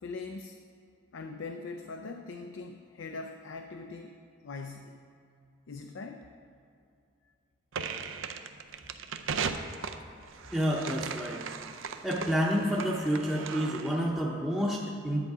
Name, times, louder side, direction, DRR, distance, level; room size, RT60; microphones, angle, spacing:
voice 1, 0.0-0.6 1.1-5.0 5.7-6.3, left 3 dB, 75° left, 5 dB, 0.5 m, -41 dB
sound 1, 7.7-14.1, right 5 dB, 80° right, 0.5 m, -38 dB
voice 2, 10.5-11.5 12.0-15.3, equal, 5° right, -6 dB, 0.7 m, -29 dB
10.5 x 7.2 x 4.8 m, 2.5 s
head